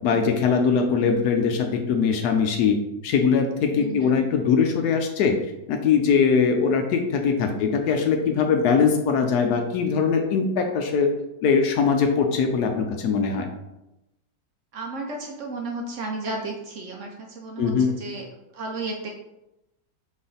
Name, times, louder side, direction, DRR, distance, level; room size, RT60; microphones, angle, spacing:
voice 1, 0.0-2.8 3.0-5.4 5.7-11.1 11.4-13.5 17.6-17.9, left 6 dB, 70° left, 5 dB, 1.0 m, -21 dB
voice 2, 3.8-4.2 7.6-7.8 14.7-18.3 18.5-19.1, right 3 dB, 70° right, 1 dB, 0.7 m, -33 dB
4.1 x 3.4 x 3.8 m, 0.91 s
omnidirectional pair, 1.9 m